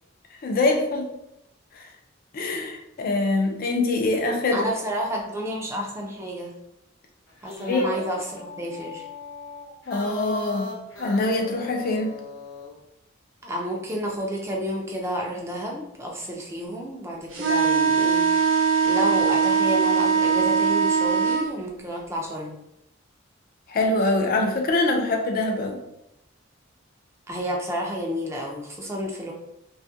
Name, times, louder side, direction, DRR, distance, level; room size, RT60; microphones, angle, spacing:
voice 1, 0.4-1.1 1.7-1.9 2.3-4.7 7.6-7.9 9.9-10.7 11.0-12.1 23.7-25.8, left 2 dB, 50° left, 3 dB, 0.4 m, -24 dB
voice 2, 4.5-6.5 7.4-9.0 13.4-18.2 18.8-22.6 27.3-29.3, equal, 15° right, -1 dB, 0.4 m, -30 dB
sound 1, 7.3-12.8, left 2 dB, 70° left, 0.8 m, -39 dB
sound 2, 17.3-21.4, right 6 dB, 80° right, 0.6 m, -21 dB
2.3 x 2.1 x 2.6 m, 0.83 s
head